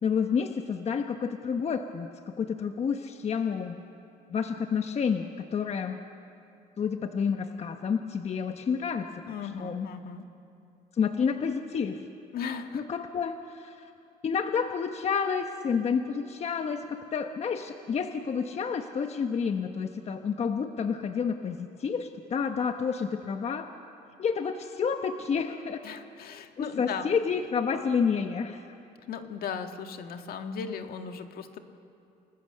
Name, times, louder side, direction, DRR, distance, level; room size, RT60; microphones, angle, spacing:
voice 1, 0.0-3.8 4.3-5.3 5.5-6.0 6.8-9.1 9.4-9.9 10.9-12.0 12.7-13.9 14.2-23.7 24.2-25.8 26.6-28.7, left 6 dB, 40° left, 6 dB, 1.1 m, -29 dB
voice 2, 9.3-10.3 12.3-12.8 25.8-27.1 29.1-31.6, left 6 dB, 65° left, 6 dB, 1.8 m, -37 dB
29.5 x 20.5 x 6.7 m, 2.6 s
cardioid pair, 110°, 17 cm